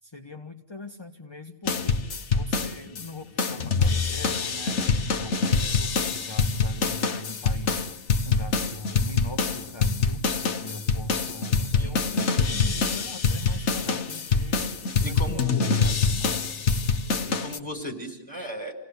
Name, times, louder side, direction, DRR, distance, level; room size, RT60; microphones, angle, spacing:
voice 1, 0.0-16.4, left 2 dB, 20° left, 3 dB, 1.3 m, -42 dB
sound 1, 1.7-3.1 3.4-17.6, left 4 dB, 60° left, 1.5 m, -25 dB
voice 2, 15.0-16.0 17.2-18.7, left 1 dB, 15° right, 3 dB, 5.0 m, -36 dB
29.5 x 18.5 x 8.2 m, 0.79 s
omnidirectional pair, 1.4 m